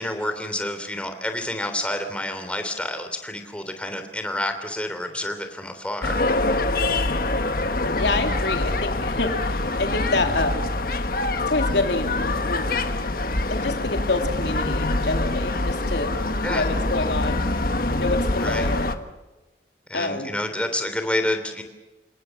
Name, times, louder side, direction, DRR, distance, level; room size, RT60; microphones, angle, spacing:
voice 1, 0.0-6.3 16.3-16.6 18.4-18.7 19.9-21.6, left 1 dB, 5° left, 7 dB, 3.2 m, -29 dB
sound 1, 6.0-18.9, left 2 dB, 55° left, 1.5 m, -25 dB
voice 2, 8.0-10.7 11.5-12.1 12.4-12.8 13.5-16.2 16.4-17.4 18.0-18.9 19.9-20.3, left 2 dB, 75° left, 4 dB, 3.1 m, -27 dB
29.0 x 18.5 x 7.2 m, 1.1 s
head